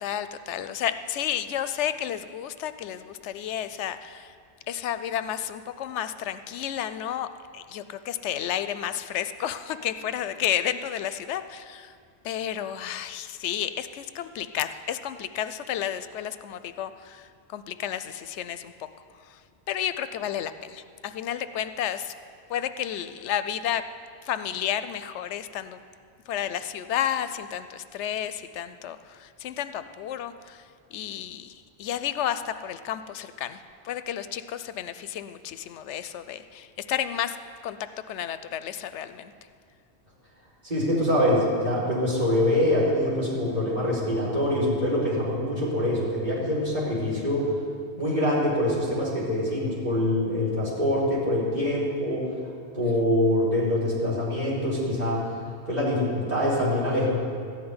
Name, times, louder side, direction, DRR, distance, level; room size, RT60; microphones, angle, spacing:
voice 1, 0.0-4.3 4.7-7.3 7.5-11.9 12.2-18.7 19.2-19.4 19.7-22.1 22.5-23.8 24.2-25.8 26.3-30.6 30.9-37.4 37.6-37.8 38.1-39.3 52.8-52.9, left 10 dB, 85° left, 12 dB, 0.9 m, -31 dB
voice 2, 40.6-47.5 48.0-52.3 52.7-55.2 55.7-57.1, left 1 dB, 40° right, -7 dB, 4.4 m, -24 dB
14.0 x 5.9 x 9.5 m, 2.2 s
omnidirectional pair, 1.1 m